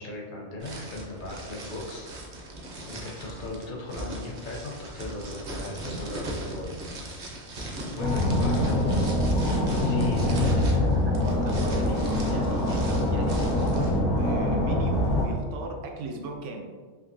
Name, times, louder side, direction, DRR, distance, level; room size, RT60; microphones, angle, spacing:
voice 1, 0.0-2.1 2.9-6.8 8.0-9.2 9.8-10.6, left 2 dB, 50° left, -2 dB, 0.7 m, -37 dB
sound 1, 0.6-14.0, right 1 dB, 50° right, 0.6 m, -39 dB
sound 2, 8.0-15.3, left 1 dB, 75° left, 1.0 m, -24 dB
voice 2, 10.3-16.7, right 2 dB, 75° right, 3 dB, 0.9 m, -38 dB
3.6 x 2.8 x 2.6 m, 1.5 s
omnidirectional pair, 1.3 m